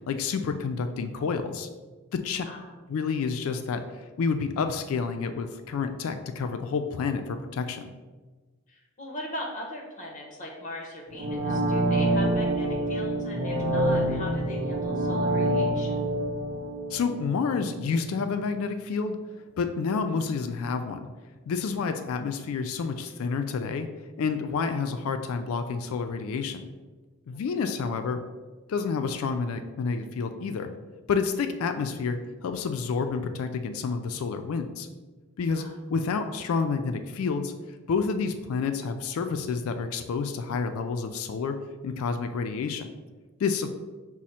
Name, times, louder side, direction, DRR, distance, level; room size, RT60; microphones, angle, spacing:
voice 1, 0.1-1.7 2.1-2.5 2.9-7.9 16.9-19.2 19.6-21.1 21.5-23.9 24.2-26.6 27.3-28.2 28.7-30.7 31.1-34.9 35.4-35.6 35.9-37.5 37.9-41.6 41.8-42.9 43.4-43.7, left 5 dB, 70° left, 7 dB, 0.3 m, -29 dB
voice 2, 8.7-16.1 27.3-27.4 35.5-35.7, left 1 dB, 35° left, -1 dB, 0.9 m, -39 dB
sound 1, 11.1-18.0 18.3-18.4, right 1 dB, 45° right, 0.6 m, -27 dB
6.0 x 2.1 x 4.1 m, 1.3 s
head